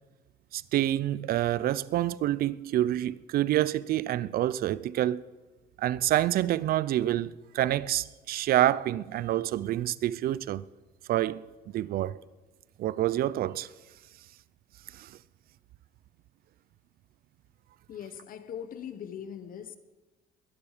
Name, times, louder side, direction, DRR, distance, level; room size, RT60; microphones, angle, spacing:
voice 1, 0.5-5.2 5.8-10.6 11.1-12.2 12.8-13.7 14.9-15.2, right 13 dB, 60° right, 0.5 m, -27 dB
voice 2, 17.9-19.8, left 8 dB, 55° left, 1.3 m, -40 dB
22.0 x 9.8 x 5.0 m
cardioid pair, 110°, 17 cm